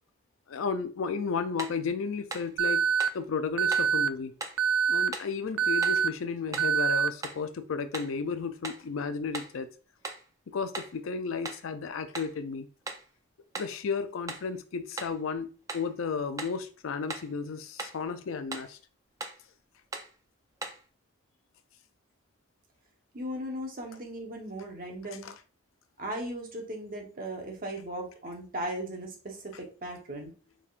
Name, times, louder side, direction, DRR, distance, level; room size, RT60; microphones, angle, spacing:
voice 1, 0.5-2.9 3.1-4.3 4.9-9.7 10.5-12.7 13.5-18.8 23.9-24.0 25.1-25.4 29.5-29.6, left 5 dB, 75° left, 0.4 m, -33 dB
sound 1, 1.6-1.8 2.3-2.5 3.0-3.2 3.7-3.9 4.4-4.6 5.1-5.4 5.8-6.1 6.5-6.8 7.2-7.5 7.9-8.2 8.6-8.9 9.3-9.6 10.0-10.3 10.7-11.0 11.5-11.7 12.1-12.4 12.9-13.1 13.6-13.8 14.3-14.5 15.0-15.2 15.7-15.9 16.4-16.6 17.1-17.3 17.8-18.0 18.5-18.8 19.2-19.4 19.9-20.2 20.6-20.9, right 3 dB, 15° right, 0.4 m, -39 dB
Alarm, 2.6-3.1 3.6-4.1 4.6-5.1 5.6-6.1 6.6-7.1, right 7 dB, 90° right, 0.4 m, -25 dB
voice 2, 23.1-25.3 26.0-30.3, right 1 dB, 40° right, 1.0 m, -37 dB
4.5 x 3.5 x 2.4 m
head